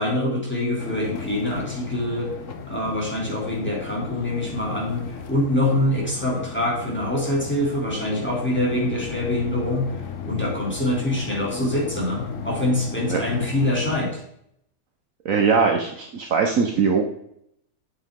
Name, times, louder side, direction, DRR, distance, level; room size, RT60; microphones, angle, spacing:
voice 1, 0.0-2.3 2.7-9.9 10.2-14.2, left 1 dB, 5° left, -5 dB, 2.8 m, -25 dB
sound 1, 0.8-14.0, left 6 dB, 55° left, 1.0 m, -35 dB
voice 2, 15.2-17.0, right 5 dB, 60° right, 3 dB, 1.1 m, -20 dB
8.5 x 7.7 x 3.7 m, 0.72 s
omnidirectional pair, 1.7 m